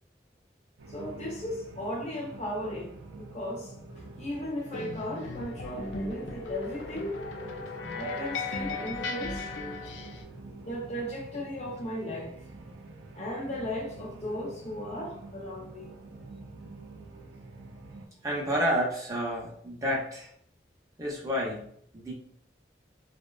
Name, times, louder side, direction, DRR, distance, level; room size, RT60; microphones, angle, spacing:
sound 1, 0.8-18.1, right 3 dB, 85° right, 0.4 m, -47 dB
voice 1, 0.9-3.7 4.2-7.2 7.9-9.5 10.6-12.3 13.1-15.9, left 1 dB, 35° left, 0.5 m, -36 dB
sound 2, 4.7-10.2, left 3 dB, 90° left, 0.4 m, -36 dB
voice 2, 7.6-8.0 10.4-10.5 18.2-20.3 21.0-21.7 21.9-22.1, equal, 20° right, 0.4 m, -30 dB
2.6 x 2.1 x 2.3 m
head